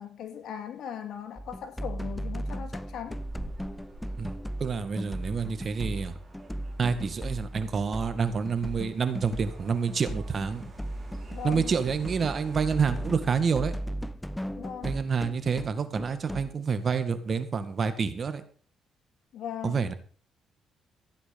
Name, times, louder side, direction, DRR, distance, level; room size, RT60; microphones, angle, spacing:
voice 1, 0.0-3.2 11.3-11.7 14.6-15.0 19.3-19.9, left 9 dB, 75° left, 2.3 m, -39 dB
sound 1, 1.4-16.5, equal, 5° left, 0.6 m, -37 dB
sound 2, 3.1-13.1, right 2 dB, 30° right, 5.9 m, -49 dB
voice 2, 4.6-6.1 6.8-10.7 11.4-13.7 14.8-18.4 19.6-19.9, right 5 dB, 45° right, 1.9 m, -28 dB
15.0 x 9.5 x 5.4 m
cardioid pair, 90°, 0 cm